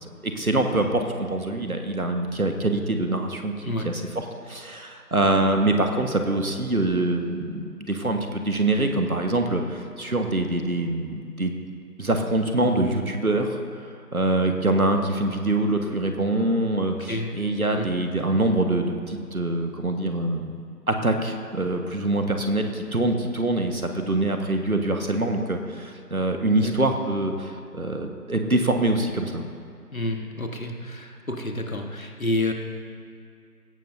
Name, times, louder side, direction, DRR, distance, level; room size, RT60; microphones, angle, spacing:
voice 1, 0.2-3.5 3.8-11.5 12.0-13.6 14.1-20.5 20.9-29.4, right 2 dB, 60° right, 4 dB, 1.5 m, -24 dB
voice 2, 26.6-26.9 29.9-32.5, left 1 dB, 55° left, 3 dB, 1.6 m, -29 dB
17.5 x 15.0 x 2.7 m, 2.3 s
figure-of-eight pair, 170°, 48 cm